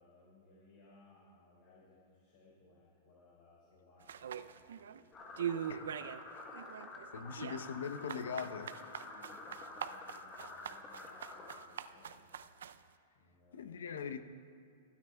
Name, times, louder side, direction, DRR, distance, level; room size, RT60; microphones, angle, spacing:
voice 1, 0.0-6.1 7.0-7.7 9.0-12.5 13.1-13.8, left 2 dB, 55° left, 3.6 m, -64 dB
sound 1, 4.1-5.0 5.4-6.2 6.5-12.8, right 9 dB, 85° right, 0.4 m, -42 dB
sound 2, 5.1-11.6, left 3 dB, 20° left, 1.1 m, -49 dB
voice 2, 7.1-8.8 13.5-14.2, left 6 dB, 90° left, 0.7 m, -41 dB
28.0 x 9.7 x 2.3 m
hypercardioid pair, 145°, 0 cm